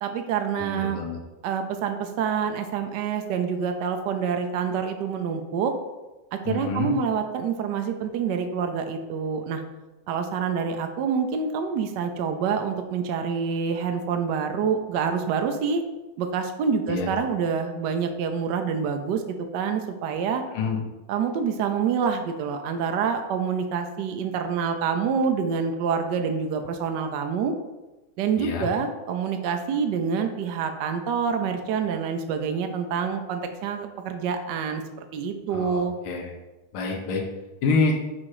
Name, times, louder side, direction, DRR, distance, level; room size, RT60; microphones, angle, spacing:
voice 1, 0.0-1.0 1.4-5.7 6.3-9.6 10.1-15.8 16.2-19.2 19.5-20.4 21.1-27.5 28.2-34.8 35.1-35.9, right 6 dB, 70° right, 6 dB, 1.1 m, -27 dB
voice 2, 0.6-1.2 6.4-6.9 16.9-17.1 20.5-20.8 28.4-28.7 35.5-36.3 36.7-37.2 37.6-37.9, left 4 dB, 80° left, 0 dB, 1.8 m, -27 dB
6.2 x 4.3 x 4.8 m, 1.1 s
omnidirectional pair, 2.3 m